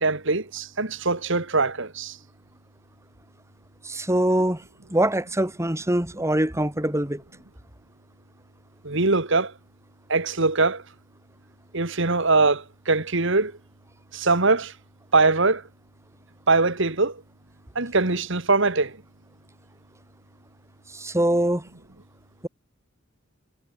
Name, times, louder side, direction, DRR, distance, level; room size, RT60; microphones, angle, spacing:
voice 1, 0.0-2.2 8.8-9.5 10.1-10.8 11.7-13.5 14.1-14.7 15.1-15.6 16.5-17.2 17.8-19.0, right 3 dB, 65° right, 2.3 m, -22 dB
voice 2, 3.8-4.6 4.9-7.2 20.9-21.7, right 1 dB, 15° right, 3.2 m, -23 dB
head